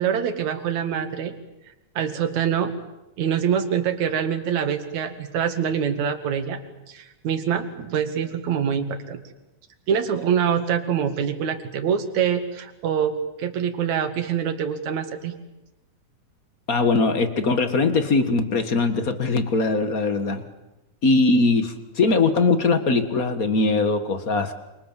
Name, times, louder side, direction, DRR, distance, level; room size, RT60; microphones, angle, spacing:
voice 1, 0.0-1.3 2.0-2.7 3.2-6.6 6.9-9.2 9.9-15.3, right 8 dB, 65° right, 8 dB, 3.3 m, -25 dB
voice 2, 16.7-20.4 21.0-24.5, left 3 dB, 40° left, 10 dB, 1.4 m, -21 dB
28.5 x 27.0 x 7.4 m, 0.95 s
omnidirectional pair, 3.7 m